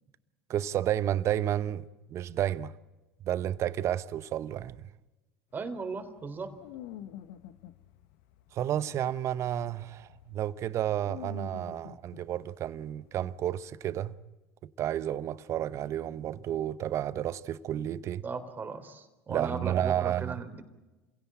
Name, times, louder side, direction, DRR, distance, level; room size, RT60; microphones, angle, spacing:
voice 1, 0.5-2.7 3.2-4.8 8.5-14.2 14.8-18.2 19.3-20.4, right 11 dB, 50° right, 1.0 m, -31 dB
sound 1, 5.5-13.7, left 11 dB, 70° left, 1.2 m, -49 dB
voice 2, 5.5-6.6 18.2-20.6, right 4 dB, 30° right, 3.6 m, -37 dB
27.0 x 17.0 x 8.8 m
hypercardioid pair, 75°, 6 cm